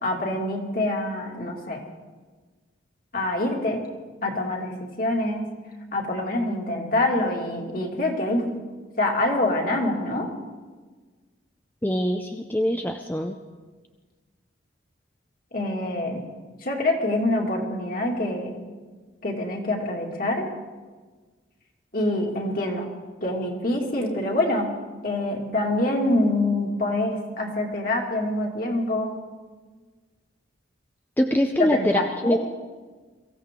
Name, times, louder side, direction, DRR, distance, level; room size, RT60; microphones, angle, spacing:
voice 1, 0.0-1.8 3.1-3.8 4.2-4.7 5.0-5.5 5.9-8.6 9.0-10.3 15.5-16.2 16.6-18.5 19.2-20.5 21.9-22.9 23.2-24.7 25.0-29.2 31.6-32.4, left 1 dB, 45° left, 0 dB, 2.4 m, -25 dB
voice 2, 11.8-13.4 31.2-32.5, equal, 10° left, 4 dB, 0.5 m, -24 dB
23.0 x 15.0 x 3.7 m, 1.4 s
head